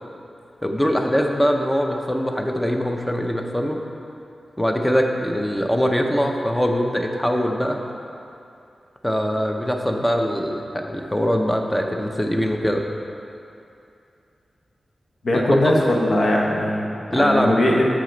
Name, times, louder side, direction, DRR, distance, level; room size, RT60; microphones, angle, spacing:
voice 1, 0.6-3.8 4.6-7.8 9.0-12.8 15.6-15.7 17.1-17.6, equal, 10° left, 3 dB, 0.6 m, -22 dB
voice 2, 15.2-17.9, left 1 dB, 70° left, -2 dB, 1.0 m, -20 dB
7.8 x 5.1 x 3.9 m, 2.6 s
wide cardioid pair, 80°, 0 cm